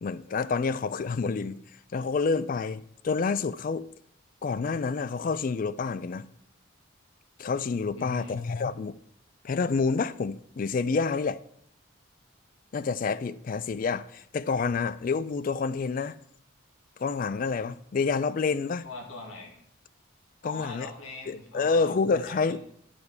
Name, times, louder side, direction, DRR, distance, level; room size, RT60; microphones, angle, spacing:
voice 1, 0.0-1.6 1.9-3.9 4.4-6.3 7.4-9.0 9.4-11.4 12.7-16.2 17.0-18.9 20.4-20.9 21.3-22.6, left 4 dB, 40° left, 0.3 m, -28 dB
voice 2, 8.0-8.3 18.8-19.6 20.4-22.6, left 2 dB, 90° left, 2.0 m, -42 dB
10.5 x 5.1 x 4.7 m
head